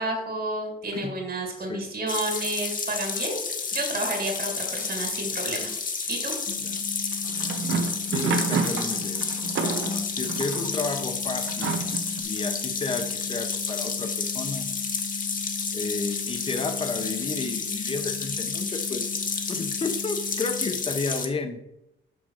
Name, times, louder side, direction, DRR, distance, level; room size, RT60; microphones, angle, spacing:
voice 1, 0.0-3.4 3.7-5.7 6.1-6.3, right 2 dB, 50° right, 2 dB, 2.6 m, -30 dB
sound 1, 2.1-21.3, left 5 dB, 45° left, 1.1 m, -31 dB
sound 2, 6.5-20.7, left 5 dB, 85° left, 2.2 m, -39 dB
sound 3, 7.1-10.7 11.5-12.2, right 5 dB, 75° right, 1.0 m, -29 dB
voice 2, 8.0-12.0 12.2-14.7 15.7-21.6, left 3 dB, 25° left, 7 dB, 0.9 m, -32 dB
6.2 x 5.1 x 6.5 m, 0.83 s
cardioid pair, 120°, 20 cm